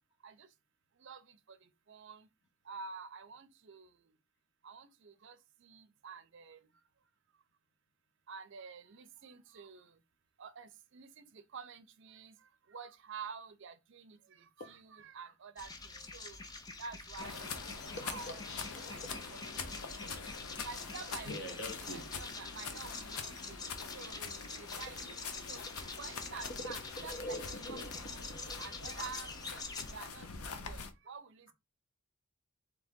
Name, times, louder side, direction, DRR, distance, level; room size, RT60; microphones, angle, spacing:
voice 1, 1.9-2.3 2.7-3.9 4.6-5.4 5.6-6.6 8.3-9.9 10.4-12.3 12.7-15.7 16.1-16.4 16.8-17.6 18.0-18.3 18.9-19.6 20.0-20.1 20.6-21.5 21.8-23.6 23.9-25.6 26.0-27.4 27.7-28.3 28.6-29.6 29.9-31.5, right 5 dB, 55° right, 0.5 m, -49 dB
sound 1, 15.6-29.9, left 3 dB, 15° left, 0.4 m, -46 dB
sound 2, 17.2-30.9, left 5 dB, 85° left, 0.7 m, -45 dB
voice 2, 17.7-19.3 19.8-20.1 21.3-22.1 26.6-29.1, left 1 dB, 50° left, 0.8 m, -46 dB
sound 3, 18.5-26.3, right 1 dB, 10° right, 0.7 m, -64 dB
3.7 x 3.3 x 3.5 m
head